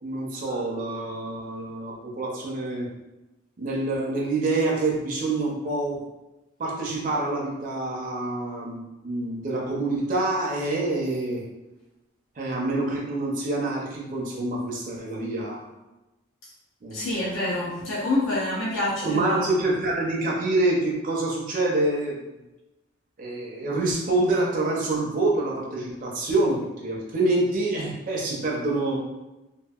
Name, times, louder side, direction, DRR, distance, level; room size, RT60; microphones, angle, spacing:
voice 1, 0.0-2.9 3.6-6.0 6.6-11.4 12.4-15.7 16.8-17.1 19.0-22.2 23.2-29.0, right 2 dB, 40° right, -3 dB, 0.5 m, -26 dB
voice 2, 16.9-19.7, left 1 dB, 70° left, -5 dB, 0.5 m, -27 dB
2.7 x 2.4 x 2.3 m, 1.0 s
head